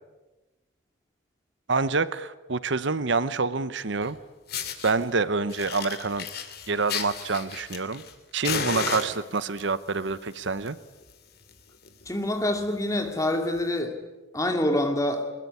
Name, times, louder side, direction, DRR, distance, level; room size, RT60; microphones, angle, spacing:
voice 1, 1.7-4.2 4.8-6.3 6.7-8.0 8.3-10.8, right 4 dB, 65° right, 0.8 m, -27 dB
Fire, 4.0-4.1 4.5-4.9 5.5-8.1 8.4-9.6 10.4-10.7 11.0-11.1 11.5-11.6 11.8-12.1 12.6-12.7 13.6-13.7, left 6 dB, 50° left, 2.5 m, -33 dB
voice 2, 12.1-14.0 14.3-15.3, left 1 dB, 15° left, 2.4 m, -26 dB
22.5 x 21.0 x 9.8 m
head